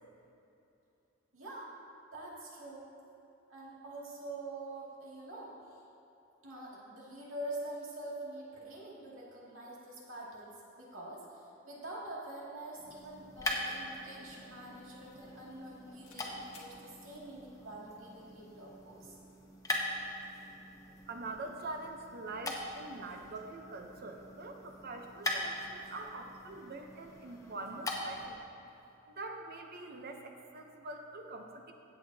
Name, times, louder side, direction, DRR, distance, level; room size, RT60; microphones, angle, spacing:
voice 1, 1.3-1.7 2.1-2.9 3.5-5.8 6.4-10.5 10.8-19.2, right 1 dB, 80° right, -5 dB, 2.3 m, -45 dB
sound 1, 12.6-12.8 13.0-15.7 16.0-16.2 16.5-16.7, left 3 dB, 80° left, 1.4 m, -60 dB
sound 2, 12.8-28.4, left 1 dB, 15° left, 0.9 m, -42 dB
voice 2, 21.1-28.4 29.1-31.7, right 2 dB, 50° right, 4 dB, 0.7 m, -44 dB
16.0 x 7.8 x 2.8 m, 3.0 s
head